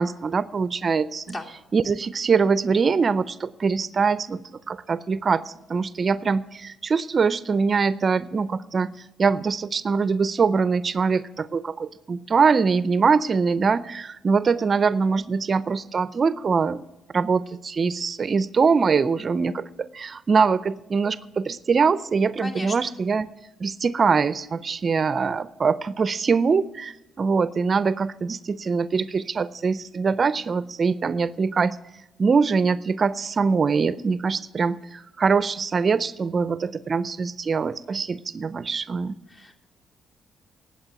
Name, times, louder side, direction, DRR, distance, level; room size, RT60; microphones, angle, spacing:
voice 1, 0.0-1.4 1.7-4.4 4.7-8.9 9.2-16.8 17.1-19.7 19.9-23.3 23.6-31.8 32.2-39.2, right 5 dB, 40° right, 16 dB, 0.5 m, -23 dB
voice 2, 22.4-22.8 39.3-39.5, left 1 dB, 40° left, 0 dB, 2.8 m, -34 dB
10.5 x 8.2 x 8.7 m, 0.95 s
cardioid pair, 90°, 0 cm